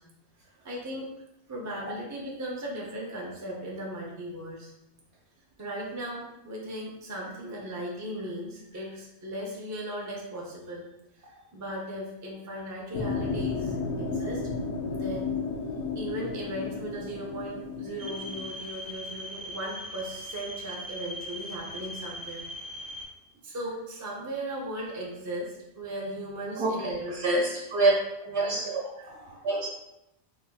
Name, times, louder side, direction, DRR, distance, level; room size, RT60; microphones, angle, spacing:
voice 1, 0.6-1.1 1.5-4.7 5.6-10.9 11.2-14.4 14.9-15.4 15.9-22.5 23.4-27.2 28.3-28.7, right 1 dB, 25° right, -3 dB, 0.4 m, -37 dB
sound 1, 12.9-18.5, left 4 dB, 90° left, 0.9 m, -33 dB
sound 2, 18.0-23.0, left 1 dB, 40° right, 0.9 m, -40 dB
voice 2, 26.6-27.9 28.3-29.7, right 2 dB, 75° right, -4 dB, 1.0 m, -27 dB
3.5 x 3.2 x 2.2 m, 0.87 s
omnidirectional pair, 1.1 m